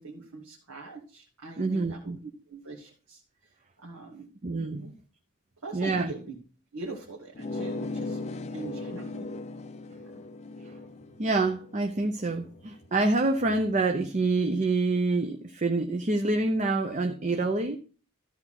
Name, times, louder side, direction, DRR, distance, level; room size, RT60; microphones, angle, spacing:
voice 1, 0.0-3.2 3.8-4.3 4.8-4.9 5.6-6.4 6.7-8.2 8.5-9.3 10.0-10.2, right 3 dB, 85° right, 2.4 m, -42 dB
voice 2, 1.6-2.2 4.4-4.9 5.7-6.1 11.2-17.8, right 3 dB, 35° right, 0.7 m, -27 dB
sound 1, 7.3-12.6, left 2 dB, 30° left, 0.5 m, -38 dB
13.5 x 4.5 x 5.8 m
head